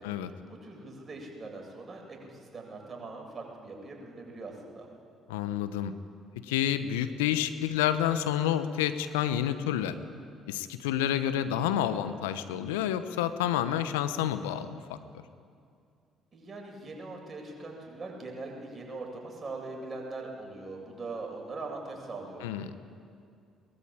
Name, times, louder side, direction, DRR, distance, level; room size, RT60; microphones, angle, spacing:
voice 1, 0.5-4.9 16.3-22.8, right 3 dB, 35° right, 0 dB, 7.8 m, -41 dB
voice 2, 5.3-5.9 6.4-10.0 10.5-14.7 22.4-22.7, left 11 dB, 80° left, 11 dB, 1.0 m, -29 dB
22.0 x 21.0 x 8.9 m, 2.4 s
hypercardioid pair, 50°, 0 cm